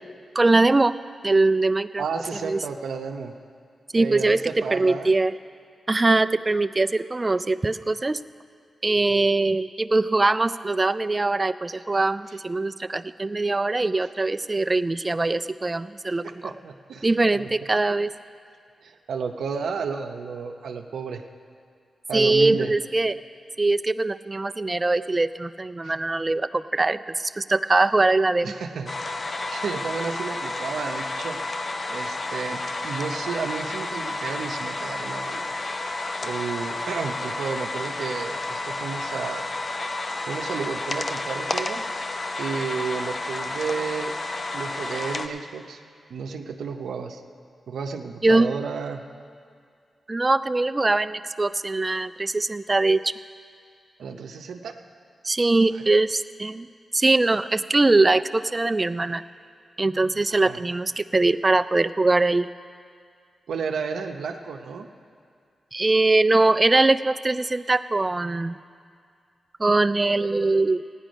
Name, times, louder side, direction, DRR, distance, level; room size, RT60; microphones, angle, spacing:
voice 1, 0.4-1.0 1.2-2.0 2.4-2.6 3.9-4.4 4.7-5.4 5.9-8.2 8.8-16.5 17.0-18.1 22.1-23.2 23.6-28.6 48.2-48.5 50.1-53.1 55.2-56.7 56.9-59.2 59.8-62.5 65.7-68.6 69.6-70.8, right 2 dB, 30° right, 13 dB, 0.3 m, -22 dB
voice 2, 2.0-3.3 3.9-5.1 9.1-9.3 16.2-17.1 17.3-17.5 18.8-21.2 22.1-22.7 25.8-25.9 28.4-28.9 29.5-31.4 31.9-35.5 36.2-39.5 40.3-41.8 42.4-44.1 44.5-45.8 46.1-47.2 47.7-49.0 54.0-54.7 60.3-60.6 63.5-64.9, right 5 dB, 85° right, 4 dB, 0.6 m, -32 dB
sound 1, 28.9-45.3, left 2 dB, 50° left, 0.7 m, -31 dB
15.5 x 9.9 x 5.1 m, 2.2 s
cardioid pair, 65°, 0 cm